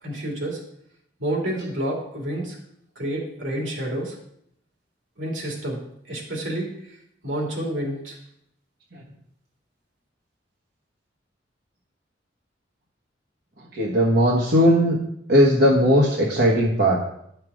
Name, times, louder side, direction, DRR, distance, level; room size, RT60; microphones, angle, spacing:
voice 1, 0.0-0.6 1.2-2.6 3.0-4.1 5.2-5.8 6.1-6.7 7.2-8.2, right 1 dB, 90° right, -1 dB, 2.9 m, -29 dB
voice 2, 13.8-15.0 15.3-17.0, equal, 60° right, -3 dB, 1.4 m, -18 dB
10.5 x 5.8 x 4.9 m, 0.73 s
head